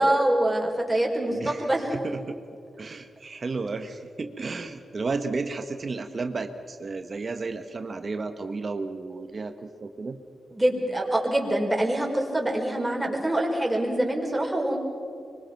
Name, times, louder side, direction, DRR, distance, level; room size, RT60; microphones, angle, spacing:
voice 1, 0.0-1.9 10.5-14.8, right 1 dB, 10° right, -1 dB, 5.3 m, -25 dB
voice 2, 1.3-2.4 2.8-10.2, right 3 dB, 45° right, 7 dB, 1.5 m, -33 dB
24.5 x 23.5 x 6.0 m, 2.4 s
cardioid pair, 65°, 0 cm